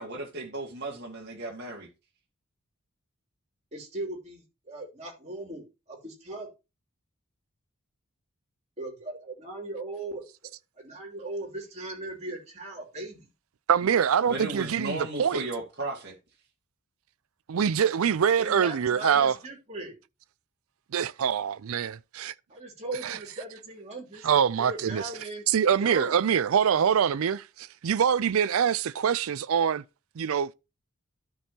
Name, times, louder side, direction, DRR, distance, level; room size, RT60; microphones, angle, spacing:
voice 1, 0.0-1.9 14.3-16.1, right 2 dB, 50° right, 2.1 m, -35 dB
voice 2, 3.7-6.5 8.8-10.2 10.8-13.3 18.4-20.0 22.5-24.3 24.6-25.4 25.8-26.2, right 2 dB, 30° right, 2.9 m, -38 dB
voice 3, 13.7-15.4 17.5-19.3 20.9-22.3 23.0-23.2 24.2-25.0 25.5-29.8 30.2-30.5, right 7 dB, 75° right, 0.4 m, -24 dB
13.0 x 5.3 x 2.9 m
head